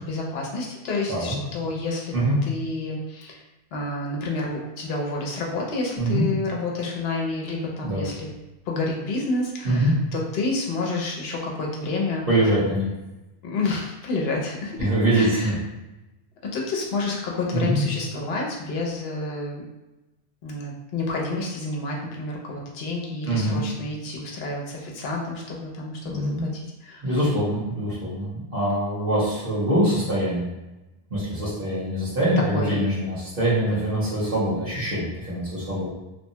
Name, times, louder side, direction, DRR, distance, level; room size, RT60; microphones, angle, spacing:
voice 1, 0.0-2.1 2.4-3.4 3.7-8.3 8.7-12.2 13.4-15.5 16.5-19.6 20.4-27.2 32.5-32.8, left 3 dB, 70° left, -2 dB, 0.8 m, -29 dB
voice 2, 12.3-12.9 14.8-15.6 17.5-17.8 23.3-23.6 26.0-26.5 27.0-30.5 31.1-35.9, right 1 dB, 55° right, -8 dB, 1.3 m, -24 dB
2.9 x 2.1 x 2.7 m, 1.0 s
omnidirectional pair, 1.1 m